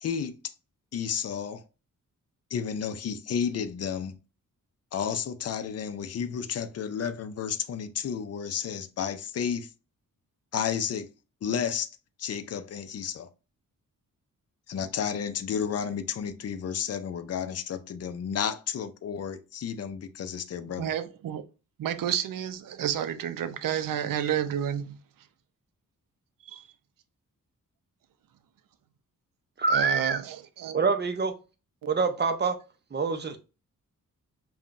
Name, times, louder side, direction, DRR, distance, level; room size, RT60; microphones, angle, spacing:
voice 1, 0.0-0.4 0.9-1.6 2.5-4.1 4.9-9.7 10.5-11.1 11.4-11.9 12.2-13.3 14.7-20.9, left 7 dB, 50° left, 0.5 m, -32 dB
voice 2, 20.8-21.4 21.8-25.0 26.4-26.7 29.7-30.9 31.8-31.9, right 10 dB, 75° right, 0.5 m, -30 dB
voice 3, 29.6-30.2 30.7-31.3 31.9-32.5 32.9-33.4, right 4 dB, 30° right, 0.5 m, -25 dB
5.5 x 2.3 x 2.4 m
wide cardioid pair, 120°, 33 cm